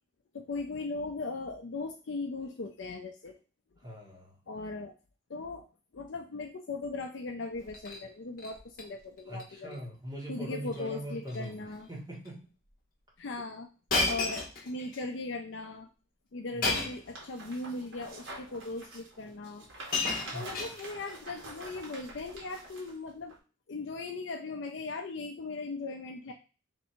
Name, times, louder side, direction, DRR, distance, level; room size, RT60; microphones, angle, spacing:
voice 1, 0.3-3.4 4.5-4.9 5.3-5.7 5.9-9.8 10.3-11.9 13.2-13.7 14.0-15.9 16.3-19.7 20.3-23.3 23.7-26.3, left 3 dB, 65° left, 3 dB, 0.5 m, -38 dB
voice 2, 3.8-4.3 9.3-11.6 11.9-12.5 16.5-16.8 20.2-20.6, right 1 dB, 20° right, -4 dB, 1.6 m, -41 dB
Shatter, 7.5-8.0 8.4-8.8 9.2-9.4 9.7-9.8 10.7-10.9 11.2-11.5 12.2-12.3 13.9-15.0 16.6-17.1 18.1-18.2 19.3-19.4 19.6-21.1 22.1-22.4, left 3 dB, 45° left, 1.1 m, -33 dB
sound 1, 16.8-22.9 23.3-23.4, right 2 dB, 80° right, 1.5 m, -46 dB
3.3 x 2.8 x 4.3 m, 0.33 s
head